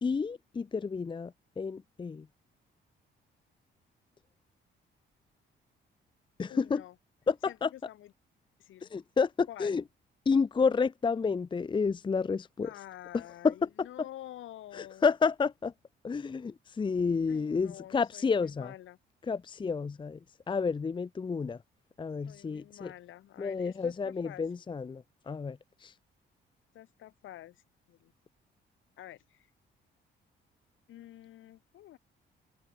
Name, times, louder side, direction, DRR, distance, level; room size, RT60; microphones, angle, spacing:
voice 1, 0.0-2.3 6.4-6.8 7.3-7.7 8.9-9.8 10.3-12.7 13.4-13.5 14.7-15.7 16.0-18.7 19.3-20.2 20.5-21.6 22.0-22.9 23.4-25.9, left 5 dB, 25° left, 0.6 m, -30 dB
voice 2, 6.5-7.0 7.5-8.1 8.6-8.9 9.5-9.7 12.6-15.1 17.3-19.0 22.3-24.4 26.7-28.1 29.0-29.5 30.9-32.0, left 13 dB, 80° left, 4.2 m, -48 dB
cardioid pair, 90°, 20 cm